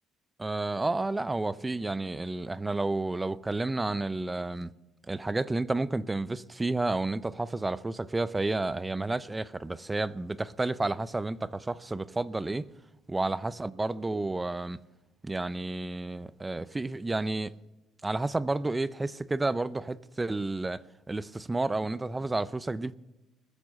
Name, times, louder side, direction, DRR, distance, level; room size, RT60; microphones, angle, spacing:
voice 1, 0.4-4.7 5.1-12.7 13.1-14.8 15.2-17.5 18.0-23.0, right 2 dB, 10° right, 0.5 m, -31 dB
20.5 x 8.4 x 6.5 m
cardioid pair, 135°, 0 cm